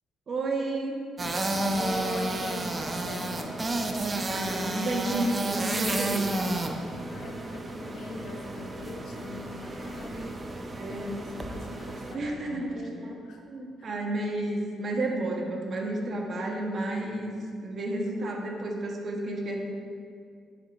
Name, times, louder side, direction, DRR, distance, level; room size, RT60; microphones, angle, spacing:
voice 1, 0.3-0.9 2.1-2.3 4.2-6.3 10.7-11.2 12.1-12.7 13.5-17.3 17.6-19.6, right 2 dB, 50° right, 0 dB, 1.1 m, -31 dB
sound 1, 1.2-12.1, right 2 dB, 25° right, 0.6 m, -32 dB
voice 2, 1.7-3.6 7.1-10.4 10.9-13.4 13.8-13.9, left 2 dB, 75° left, 2 dB, 0.8 m, -41 dB
9.9 x 4.6 x 2.6 m, 2.3 s
cardioid pair, 90°, 0 cm